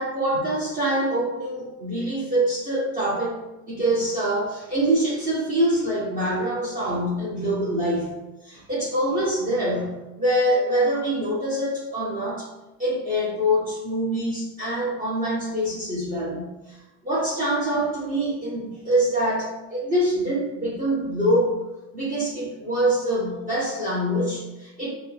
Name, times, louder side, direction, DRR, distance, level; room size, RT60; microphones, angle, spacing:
voice 1, 0.0-3.4 3.7-8.1 8.4-12.5 12.8-16.8 17.0-21.6 21.9-24.9, right 1 dB, 20° right, -8 dB, 0.9 m, -25 dB
4.3 x 2.1 x 2.3 m, 1.0 s
hypercardioid pair, 90°, 40 cm